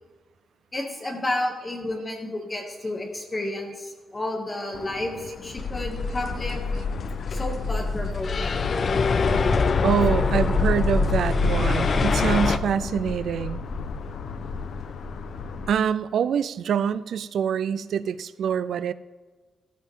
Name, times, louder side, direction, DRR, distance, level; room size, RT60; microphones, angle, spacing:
voice 1, 0.7-6.6 7.3-8.6 9.3-9.6 9.8-9.9, left 1 dB, 20° left, 0 dB, 2.3 m, -31 dB
sound 1, 4.7-15.7, left 4 dB, 80° left, 0.9 m, -35 dB
sound 2, 5.6-12.6, left 4 dB, 45° left, 0.6 m, -24 dB
voice 2, 9.8-13.6 15.7-18.9, right 8 dB, 80° right, 16 dB, 0.4 m, -25 dB
14.0 x 14.0 x 3.7 m, 1.3 s
wide cardioid pair, 150°, 0 cm